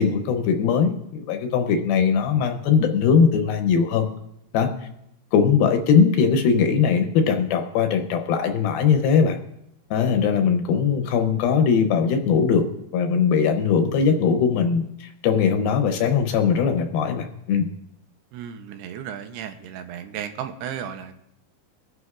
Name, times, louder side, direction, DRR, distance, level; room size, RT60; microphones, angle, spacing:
voice 1, 0.0-4.1 4.5-4.7 5.3-9.4 9.9-12.7 12.9-17.7, left 6 dB, 75° left, 5 dB, 2.4 m, -20 dB
voice 2, 18.3-21.2, right 9 dB, 85° right, 7 dB, 2.7 m, -34 dB
23.0 x 9.5 x 2.4 m, 0.80 s
omnidirectional pair, 4.7 m